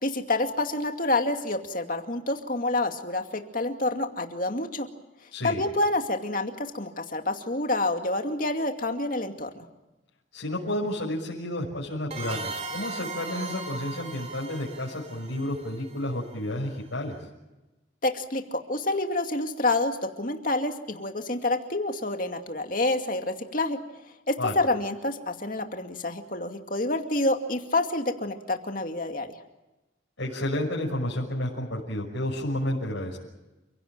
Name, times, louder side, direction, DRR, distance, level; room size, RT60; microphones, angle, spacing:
voice 1, 0.0-4.9 5.4-9.7 18.0-23.8 24.3-29.3, left 2 dB, 45° left, 5 dB, 2.4 m, -28 dB
voice 2, 5.3-5.6 10.3-17.3 24.4-24.5 30.2-33.2, left 1 dB, 90° left, -3 dB, 6.0 m, -31 dB
sound 1, 12.1-16.6, right 3 dB, 35° right, 3.4 m, -38 dB
29.5 x 17.0 x 9.0 m, 1.1 s
head